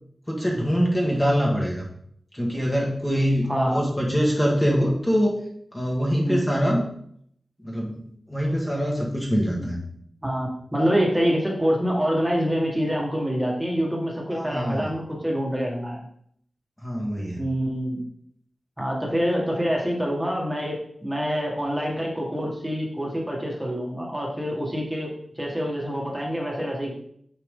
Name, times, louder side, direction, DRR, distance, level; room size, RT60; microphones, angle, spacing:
voice 1, 0.3-1.9 2.3-5.4 5.7-6.8 7.6-9.8 14.3-14.9 16.8-17.4, equal, 10° left, -3 dB, 1.6 m, -24 dB
voice 2, 3.5-3.8 6.2-6.4 9.5-9.7 10.2-16.0 17.4-18.0 18.8-26.9, equal, 10° right, -2 dB, 1.7 m, -26 dB
8.5 x 4.7 x 3.7 m, 0.68 s
wide cardioid pair, 105°, 0 cm